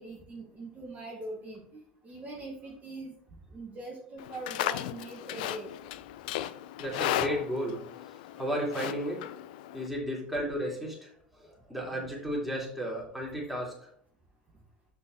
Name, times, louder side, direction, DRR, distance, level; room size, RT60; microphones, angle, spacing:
voice 1, 0.0-3.1 3.5-5.7, right 2 dB, 30° right, -3 dB, 2.3 m, -42 dB
Livestock farm animals working animals, 4.2-9.9, left 13 dB, 70° left, 0.4 m, -35 dB
voice 2, 6.8-7.9 8.4-9.3 9.7-11.1 11.4-13.8, equal, ahead, -3 dB, 3.5 m, -33 dB
6.5 x 5.6 x 4.8 m, 0.62 s
hypercardioid pair, 80°, 5 cm